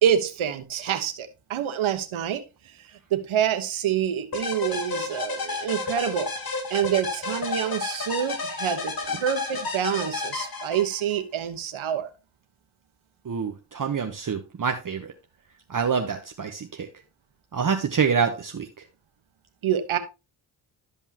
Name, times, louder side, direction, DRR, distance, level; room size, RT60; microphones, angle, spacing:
voice 1, 0.0-2.4 3.1-6.3 6.7-8.9 9.2-12.1 19.6-20.0, right 9 dB, 75° right, 9 dB, 1.2 m, -26 dB
sound 1, 4.3-11.2, left 3 dB, 45° left, 2.1 m, -31 dB
voice 2, 13.2-15.1 15.7-16.9 17.5-18.8, right 6 dB, 40° right, 5 dB, 1.0 m, -26 dB
12.5 x 5.4 x 2.9 m, 0.28 s
cardioid pair, 70°, 48 cm